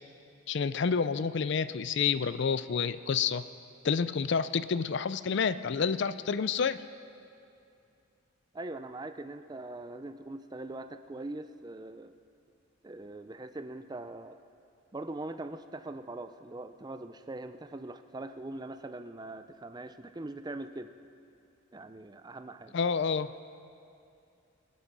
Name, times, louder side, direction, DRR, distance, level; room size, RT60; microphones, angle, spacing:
voice 1, 0.5-3.4 3.8-6.8 22.7-23.3, left 6 dB, 55° left, 14 dB, 0.4 m, -29 dB
voice 2, 8.5-12.1 12.8-14.4 14.9-20.9 21.7-22.7, right 2 dB, 20° right, 10 dB, 0.4 m, -42 dB
24.5 x 8.3 x 6.1 m, 2.5 s
head